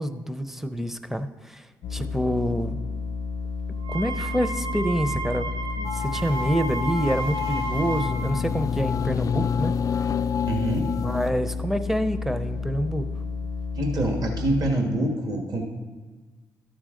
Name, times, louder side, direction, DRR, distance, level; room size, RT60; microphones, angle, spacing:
voice 1, 0.0-1.7 1.9-2.8 3.9-5.5 5.8-9.7 11.0-13.1, equal, 5° right, 11 dB, 0.6 m, -27 dB
sound 1, 1.8-14.7, left 4 dB, 85° left, 0.7 m, -32 dB
Wind instrument woodwind instrument, 3.8-8.3, right 4 dB, 80° right, 1.4 m, -33 dB
sound 2, 5.9-11.3, left 8 dB, 45° left, 0.4 m, -29 dB
voice 2, 10.4-10.9 13.7-15.7, right 1 dB, 50° right, 2 dB, 1.6 m, -25 dB
12.5 x 6.2 x 3.8 m, 1.3 s
supercardioid pair, 65°, 8 cm